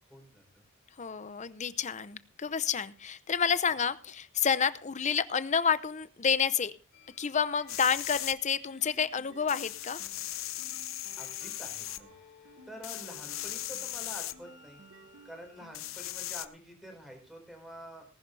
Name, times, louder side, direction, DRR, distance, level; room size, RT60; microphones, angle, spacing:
voice 1, 0.1-0.6 11.2-12.1 12.7-14.8 15.2-18.0, equal, ahead, 3 dB, 4.6 m, -47 dB
voice 2, 1.0-6.7 7.2-10.0, left 6 dB, 35° left, 15 dB, 0.6 m, -29 dB
sound 1, 6.9-15.7, left 4 dB, 60° left, 3.1 m, -61 dB
sound 2, 7.7-8.3 9.5-12.0 12.8-14.3 15.7-16.5, left 14 dB, 90° left, 0.8 m, -38 dB
sound 3, 8.6-16.1, right 2 dB, 65° right, 1.0 m, -57 dB
19.0 x 11.0 x 3.3 m, 0.34 s
head